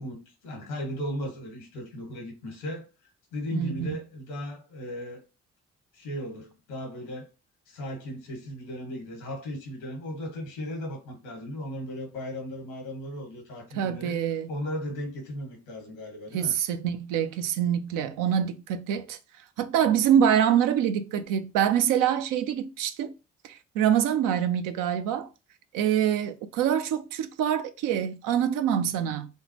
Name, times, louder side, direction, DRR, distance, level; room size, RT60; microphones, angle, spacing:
voice 1, 0.0-2.9 3.3-5.2 5.9-7.3 7.7-14.2 14.5-16.5 28.8-29.1, equal, 85° left, 1.2 m, -36 dB
voice 2, 3.5-3.9 13.7-14.5 16.3-19.2 19.6-23.1 23.4-25.3 25.7-29.3, right 9 dB, 75° right, 0.5 m, -25 dB
3.5 x 2.0 x 2.8 m
hypercardioid pair, 45°, 33 cm